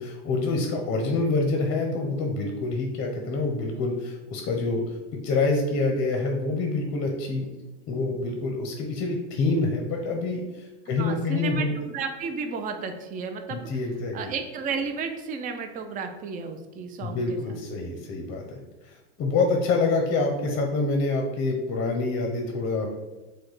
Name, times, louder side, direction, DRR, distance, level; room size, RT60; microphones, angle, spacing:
voice 1, 0.0-4.8 5.2-7.5 7.9-11.8 13.5-14.3 17.0-22.9, left 3 dB, 35° left, 2 dB, 0.6 m, -26 dB
voice 2, 10.9-13.7 14.1-17.5, right 5 dB, 25° right, 6 dB, 0.4 m, -33 dB
4.8 x 2.2 x 3.9 m, 1.1 s
supercardioid pair, 120°, 34 cm